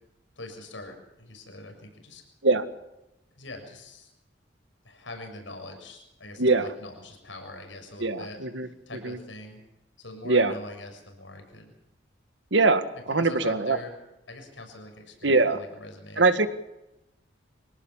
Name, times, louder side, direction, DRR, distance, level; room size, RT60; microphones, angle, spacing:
voice 1, 0.4-2.2 3.4-4.1 4.8-9.6 10.0-11.7 13.1-13.9 14.3-16.2, left 2 dB, 85° left, 4 dB, 6.9 m, -43 dB
voice 2, 6.4-6.7 8.0-8.7 9.0-9.2 10.3-10.5 12.5-13.8 15.2-15.6 16.2-16.5, right 3 dB, 75° right, 10 dB, 1.9 m, -22 dB
25.5 x 18.0 x 7.3 m, 0.93 s
head